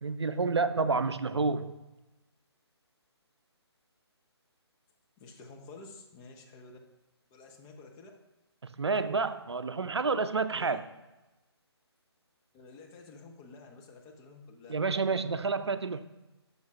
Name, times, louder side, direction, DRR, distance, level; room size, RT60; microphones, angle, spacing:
voice 1, 0.0-1.8 8.6-10.8 14.7-16.0, right 4 dB, 70° right, 0.5 m, -29 dB
voice 2, 5.2-6.8 7.3-8.1 10.6-10.8 12.5-14.7, left 3 dB, 15° left, 0.7 m, -50 dB
11.5 x 6.6 x 2.4 m
figure-of-eight pair, 145°, 14 cm